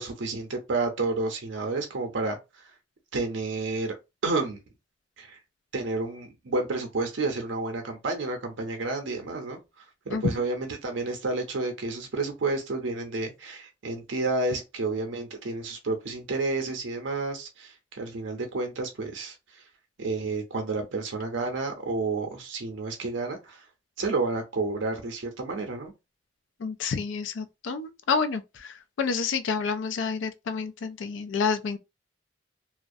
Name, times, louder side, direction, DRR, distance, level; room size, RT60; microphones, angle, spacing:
voice 1, 0.0-2.4 3.1-4.0 4.2-4.6 5.2-5.4 5.7-9.6 10.1-19.3 20.0-23.6 24.0-25.9, right 3 dB, 85° right, 0.6 m, -30 dB
voice 2, 26.6-31.8, left 5 dB, 80° left, 0.4 m, -29 dB
2.4 x 2.0 x 2.5 m
head